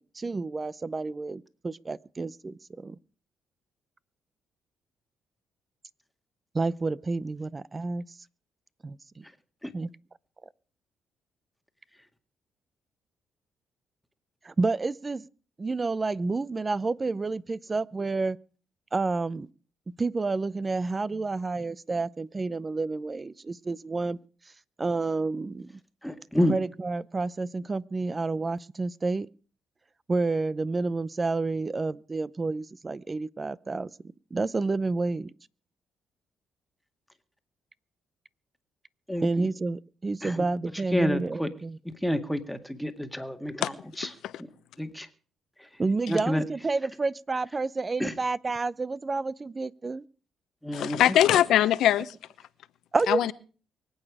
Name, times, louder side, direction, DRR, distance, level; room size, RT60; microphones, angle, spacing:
voice 1, 0.0-3.0 6.5-8.1 8.8-9.2 9.7-9.9 14.4-15.2 15.6-18.4 18.9-19.5 19.9-24.2 24.8-25.7 26.5-29.3 30.1-33.9 34.3-35.3 39.2-41.8 45.8-50.0 52.9-53.3, right 3 dB, 25° right, 0.6 m, -29 dB
voice 2, 26.0-26.6 39.1-39.5 40.2-40.4 40.9-41.5 41.9-44.1 44.8-45.1 45.6-45.7 46.1-46.4 48.0-48.1 50.6-51.0, left 1 dB, 5° left, 2.0 m, -29 dB
voice 3, 50.7-52.1 53.1-53.3, left 12 dB, 80° left, 0.9 m, -22 dB
24.0 x 8.9 x 4.9 m
cardioid pair, 90°, 0 cm